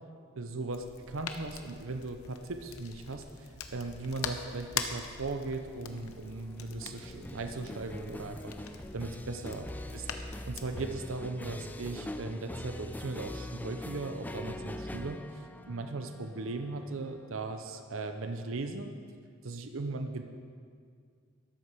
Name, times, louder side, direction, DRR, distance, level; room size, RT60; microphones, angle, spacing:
voice 1, 0.4-9.7 9.9-18.9 19.4-20.2, right 3 dB, 65° right, 6 dB, 0.7 m, -38 dB
sound 1, 0.7-11.0, left 6 dB, 85° left, 0.8 m, -43 dB
sound 2, 3.6-18.7, left 1 dB, 10° left, 0.4 m, -44 dB
13.0 x 8.0 x 6.1 m, 2.1 s
head